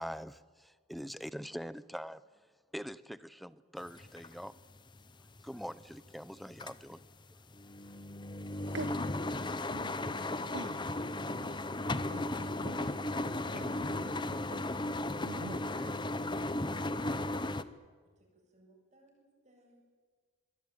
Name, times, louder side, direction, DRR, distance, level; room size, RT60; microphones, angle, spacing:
voice 1, 0.0-2.2 2.7-4.6 5.4-7.0, equal, ahead, 16 dB, 0.7 m, -43 dB
sound 1, 3.8-6.2 6.5-6.9 7.3-17.6, left 2 dB, 25° left, 0.9 m, -36 dB
voice 2, 8.7-10.2 10.5-11.5 12.1-14.7 15.2-16.0, right 2 dB, 65° right, 9 dB, 1.2 m, -47 dB
voice 3, 18.2-19.8, right 1 dB, 35° right, 1 dB, 7.9 m, -67 dB
25.0 x 21.0 x 9.4 m, 1.5 s
head